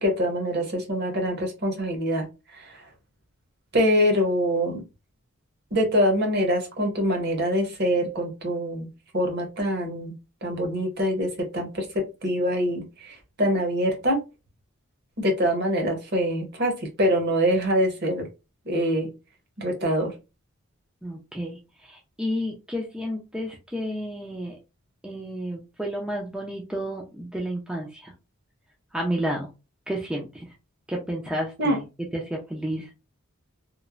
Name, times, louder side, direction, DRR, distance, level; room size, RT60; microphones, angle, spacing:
voice 1, 0.0-2.8 3.7-4.8 5.7-8.9 9.1-10.1 10.4-14.2 15.2-18.3 18.7-19.1 19.6-20.2 31.6-31.8, equal, 50° right, 3 dB, 0.8 m, -24 dB
voice 2, 21.0-24.6 25.0-28.1 28.9-29.5 29.9-30.5 30.9-31.8 32.1-32.9, equal, 5° right, -1 dB, 0.4 m, -31 dB
3.0 x 2.0 x 2.4 m, 0.27 s
head